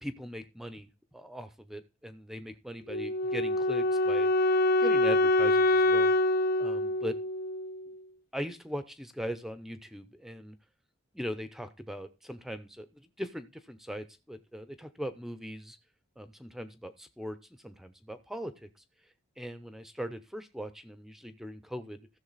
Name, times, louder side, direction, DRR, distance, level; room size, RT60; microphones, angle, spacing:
voice 1, 0.0-4.3 4.8-6.1 6.6-7.2 8.3-10.6 11.1-15.8 16.2-18.7 19.4-22.1, equal, ahead, 11 dB, 0.6 m, -40 dB
Wind instrument woodwind instrument, 2.9-7.9, left 1 dB, 45° left, 0.5 m, -25 dB
14.5 x 6.7 x 4.0 m, 0.29 s
head